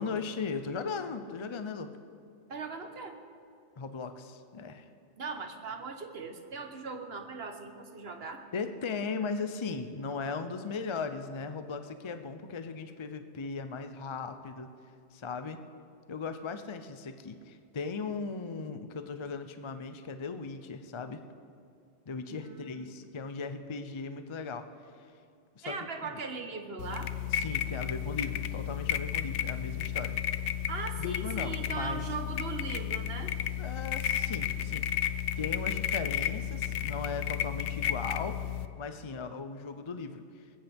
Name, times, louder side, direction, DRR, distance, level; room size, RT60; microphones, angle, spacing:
voice 1, 0.0-1.9 3.8-4.9 8.5-14.7 15.1-15.6 16.1-21.2 22.1-25.1 25.6-25.8 26.0-26.2 27.3-30.2 31.0-32.1 33.6-34.9 35.4-38.4 38.8-40.5, left 4 dB, 35° left, 8 dB, 0.5 m, -38 dB
voice 2, 2.5-3.2 5.2-8.4 22.3-22.9 25.6-27.1 30.7-33.3, right 4 dB, 55° right, 6 dB, 1.4 m, -39 dB
sound 1, 26.8-38.7, left 10 dB, 70° left, 0.9 m, -33 dB
20.5 x 16.0 x 3.5 m, 2.5 s
omnidirectional pair, 1.3 m